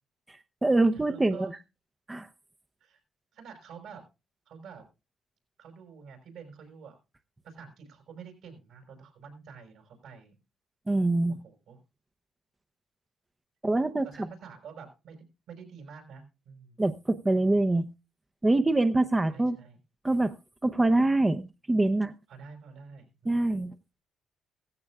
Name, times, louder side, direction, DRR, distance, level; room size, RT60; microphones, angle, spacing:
voice 1, 0.3-1.6 2.1-2.3 10.9-11.4 13.6-14.0 16.8-17.8 18.4-19.6 20.0-20.4 20.6-22.1 23.3-23.7, right 2 dB, 15° right, 9 dB, 0.7 m, -25 dB
voice 2, 0.9-1.5 2.8-3.0 3.3-4.0 4.4-4.9 5.6-7.0 7.4-10.3 11.3-11.8 14.1-16.8 19.3-19.8 22.3-23.6, right 6 dB, 80° right, 3 dB, 5.2 m, -48 dB
16.0 x 15.5 x 2.4 m, 0.28 s
cardioid pair, 90°, 0 cm